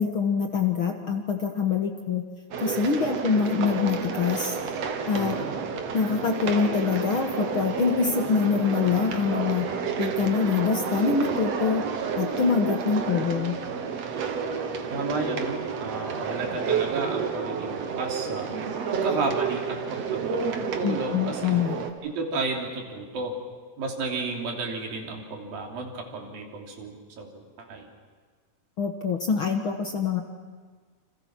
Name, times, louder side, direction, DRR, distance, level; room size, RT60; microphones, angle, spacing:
voice 1, 0.0-2.2 2.6-4.6 5.1-5.4 5.9-9.7 10.0-11.8 12.1-13.6 20.8-21.8 28.8-30.2, left 6 dB, 50° left, 4 dB, 1.6 m, -25 dB
sound 1, 2.5-21.9, right 6 dB, 55° right, 2.4 m, -30 dB
voice 2, 5.1-5.5 14.9-18.5 18.9-21.6 22.0-23.3 23.8-27.9, right 3 dB, 90° right, 1 dB, 4.9 m, -32 dB
29.5 x 27.0 x 6.0 m, 1.5 s
omnidirectional pair, 4.0 m